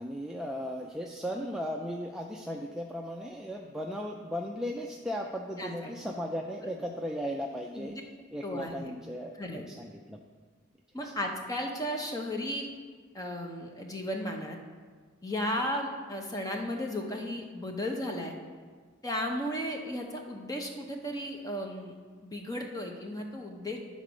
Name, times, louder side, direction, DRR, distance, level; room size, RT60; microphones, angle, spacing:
voice 1, 0.0-8.0 8.3-10.2 11.0-11.1, equal, 5° right, -1 dB, 0.4 m, -36 dB
voice 2, 5.6-5.9 7.7-8.0 8.4-8.9 9.4-9.6 10.9-12.7 13.1-14.6 15.2-18.3 19.0-21.9 22.2-23.8, left 1 dB, 15° left, 2 dB, 0.9 m, -35 dB
10.5 x 4.1 x 6.2 m, 1.5 s
head